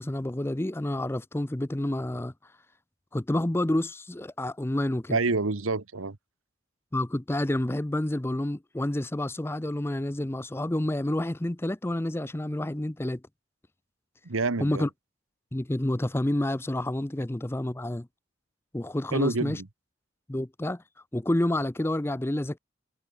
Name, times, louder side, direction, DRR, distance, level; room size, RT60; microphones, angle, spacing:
voice 1, 0.0-2.3 3.1-5.2 6.9-13.2 14.6-14.9 15.5-18.1 18.7-19.6 20.3-20.8 21.1-22.6, left 1 dB, 10° left, 0.5 m, -29 dB
voice 2, 5.1-6.2 14.2-14.9 19.1-19.7, right 3 dB, 80° right, 1.2 m, -27 dB
head